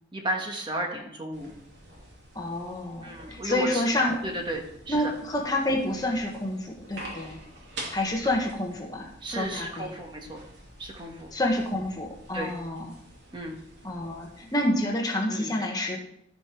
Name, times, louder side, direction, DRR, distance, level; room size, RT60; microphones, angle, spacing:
voice 1, 0.1-1.6 3.0-3.8 4.2-4.6 4.9-5.0 9.2-10.4 10.8-11.3 12.3-12.5 13.3-13.6 15.3-15.5, right 1 dB, 25° right, 2 dB, 1.3 m, -33 dB
sound 1, 1.3-14.7, right 1 dB, 70° right, 2.8 m, -47 dB
voice 2, 2.3-4.2 4.9-7.4 7.9-9.9 11.3-12.9 13.8-16.0, left 1 dB, 20° left, 0 dB, 1.3 m, -28 dB
15.0 x 5.3 x 4.5 m, 0.78 s
head